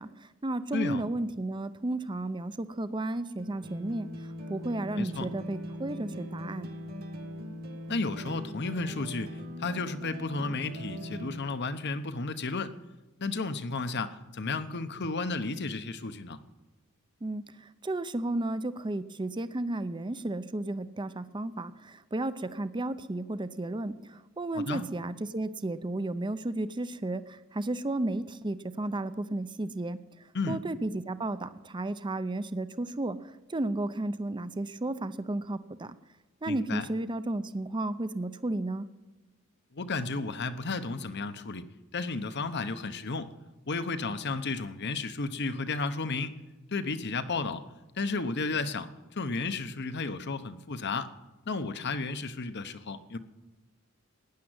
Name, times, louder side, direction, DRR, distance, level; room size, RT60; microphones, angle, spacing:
voice 1, 0.0-4.1 4.5-6.7 17.2-30.0 30.5-36.0 36.4-38.9, right 2 dB, 20° right, 13 dB, 0.6 m, -33 dB
voice 2, 0.7-1.0 4.9-5.3 7.9-12.7 13.2-16.4 24.5-24.8 30.3-30.6 36.5-36.8 39.7-41.6 41.9-43.3 43.7-46.3 46.7-47.6 48.0-51.1 51.5-53.2, left 3 dB, 55° left, 11 dB, 0.9 m, -33 dB
sound 1, 3.4-11.4, left 1 dB, 45° right, 1.5 m, -40 dB
15.0 x 10.0 x 7.9 m, 1.1 s
head